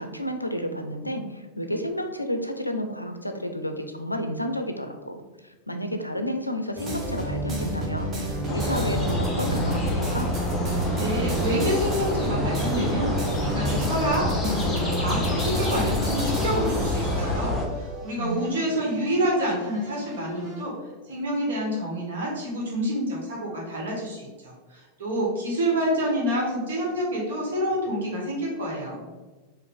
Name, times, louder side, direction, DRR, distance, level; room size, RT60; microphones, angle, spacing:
voice 1, 0.0-10.3 18.2-18.6, equal, 85° left, 6 dB, 0.4 m, -31 dB
sound 1, 6.8-20.6, right 1 dB, 25° right, 1.0 m, -31 dB
sound 2, 8.5-17.7, left 1 dB, 10° left, 0.9 m, -28 dB
voice 2, 11.0-13.1 13.4-20.7 21.0-29.0, equal, 60° right, -3 dB, 1.5 m, -28 dB
4.7 x 2.5 x 3.8 m, 1.2 s
figure-of-eight pair, 90°, 0 cm